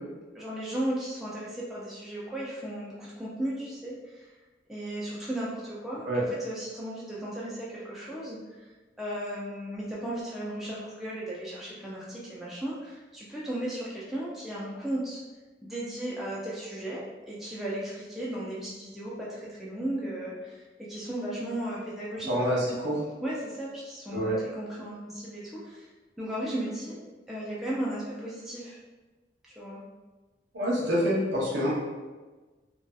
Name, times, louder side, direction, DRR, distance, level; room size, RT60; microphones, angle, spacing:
voice 1, 0.3-4.3 4.7-6.1 6.4-8.6 9.0-15.2 15.6-20.6 20.9-22.3 22.6-22.7 23.2-25.9 26.2-27.0 27.3-28.8 29.6-29.8, right 1 dB, ahead, -7 dB, 0.4 m, -35 dB
voice 2, 22.3-22.9 24.1-24.4 30.5-31.7, equal, 85° right, -5 dB, 0.8 m, -26 dB
2.6 x 2.3 x 2.3 m, 1.2 s
head